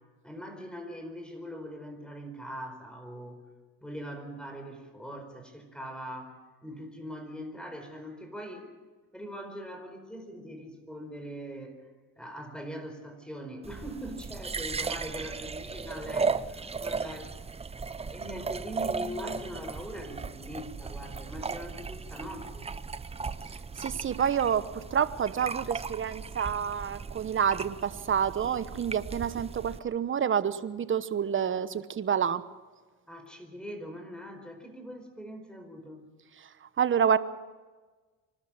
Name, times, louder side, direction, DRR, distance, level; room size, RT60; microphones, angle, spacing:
voice 1, 0.2-3.4 3.8-8.7 9.1-11.8 12.2-22.7 33.1-36.1, equal, 5° left, 6 dB, 4.8 m, -42 dB
sound 1, 13.6-29.8, right 4 dB, 20° right, 0.7 m, -36 dB
voice 2, 23.8-32.4 36.8-37.2, right 8 dB, 35° right, 14 dB, 1.1 m, -28 dB
25.0 x 12.5 x 8.9 m, 1.3 s
supercardioid pair, 90°, 33 cm